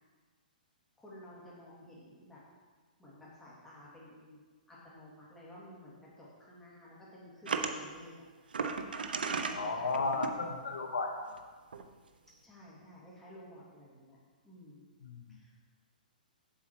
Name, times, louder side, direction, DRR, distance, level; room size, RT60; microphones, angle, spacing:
voice 1, 1.0-2.4 3.0-4.4 4.7-8.3 9.3-10.3 12.4-14.2 14.4-14.9 15.3-15.5, left 1 dB, 5° left, -7 dB, 2.9 m, -53 dB
sound 1, 7.5-7.7 8.5-9.6 9.9-10.3 11.4-11.5 11.7-11.9, right 5 dB, 85° right, 0.7 m, -34 dB
voice 2, 9.5-11.4 15.0-15.5, left 3 dB, 80° left, 4 dB, 1.3 m, -35 dB
7.5 x 6.9 x 4.7 m, 1.5 s
hypercardioid pair, 135°, 5 cm